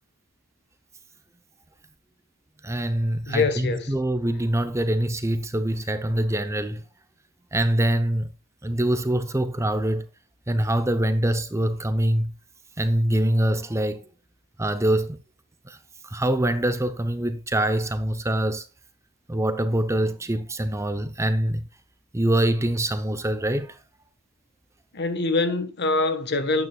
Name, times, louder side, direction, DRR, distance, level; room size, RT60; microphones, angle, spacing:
voice 1, 2.6-6.8 7.5-8.3 8.6-10.1 10.5-12.3 12.8-14.1 14.6-15.2 15.7-15.8 16.0-18.6 19.3-21.6 22.1-23.8, right 1 dB, 15° right, 0.7 m, -24 dB
voice 2, 3.3-3.9 24.9-26.7, left 3 dB, 55° left, 1.4 m, -24 dB
12.0 x 9.6 x 2.4 m
head